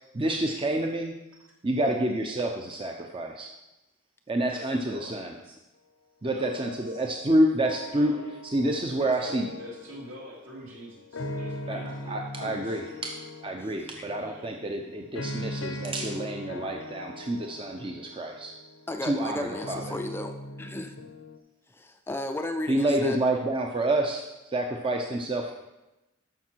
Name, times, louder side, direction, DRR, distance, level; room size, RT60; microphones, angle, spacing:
voice 1, 0.1-1.1 1.6-3.5 4.3-5.3 6.2-8.1 8.5-9.5 11.7-11.8 12.1-13.1 13.4-18.5 19.0-19.8 22.7-25.5, right 1 dB, 25° right, 2 dB, 0.7 m, -28 dB
voice 2, 4.5-5.6 6.3-7.0 7.9-8.2 8.9-12.8 14.1-14.5, equal, 70° right, -4 dB, 3.3 m, -46 dB
sound 1, 6.4-21.4, left 1 dB, 80° left, 0.8 m, -40 dB
voice 3, 13.6-14.0 18.9-20.9 21.7-23.2, left 1 dB, 10° left, 6 dB, 0.5 m, -35 dB
13.5 x 5.8 x 4.6 m, 0.98 s
head